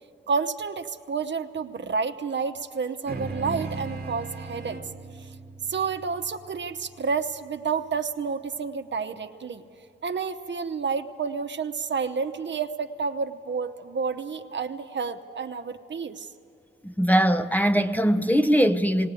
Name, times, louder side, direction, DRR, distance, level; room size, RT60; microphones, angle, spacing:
voice 1, 0.3-4.8 5.2-5.3 5.7-9.6 10.0-16.3, right 5 dB, 65° right, 0.9 m, -30 dB
sound 1, 3.1-7.8, right 3 dB, 50° right, 1.5 m, -38 dB
voice 2, 16.8-19.1, equal, 10° left, 0.7 m, -21 dB
19.5 x 18.0 x 8.4 m
cardioid pair, 70°, 20 cm